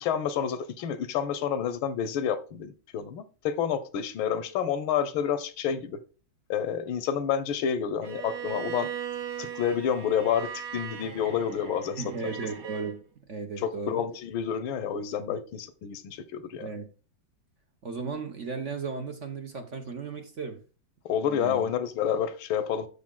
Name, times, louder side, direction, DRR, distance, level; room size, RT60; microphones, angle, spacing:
voice 1, 0.0-6.0 6.5-8.9 9.4-12.0 13.6-16.7 21.1-22.9, left 8 dB, 75° left, 1.7 m, -29 dB
Bowed string instrument, 8.0-12.9, right 9 dB, 75° right, 2.3 m, -38 dB
voice 2, 12.0-13.0 13.3-14.0 15.3-15.4 16.6-16.9 17.8-20.6 21.2-21.7, right 5 dB, 45° right, 1.0 m, -35 dB
7.5 x 6.7 x 3.8 m
omnidirectional pair, 2.3 m